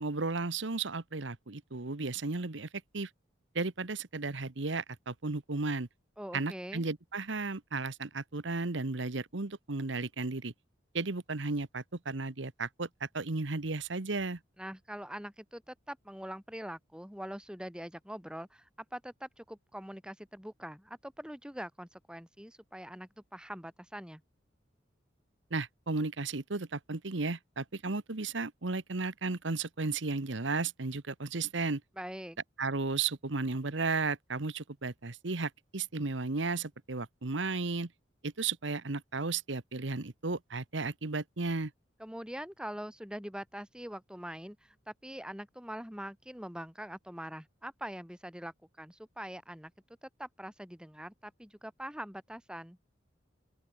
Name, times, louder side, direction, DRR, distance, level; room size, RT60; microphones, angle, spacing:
voice 1, 0.0-2.7 2.9-3.1 3.5-5.9 6.3-10.5 10.9-12.9 13.1-14.4 25.5-31.8 32.6-37.9 38.2-41.7, right 3 dB, 75° right, 1.2 m, -34 dB
voice 2, 6.2-6.8 14.6-24.2 32.0-32.4 42.0-49.7 50.0-52.8, equal, 5° right, 3.4 m, -43 dB
open air
head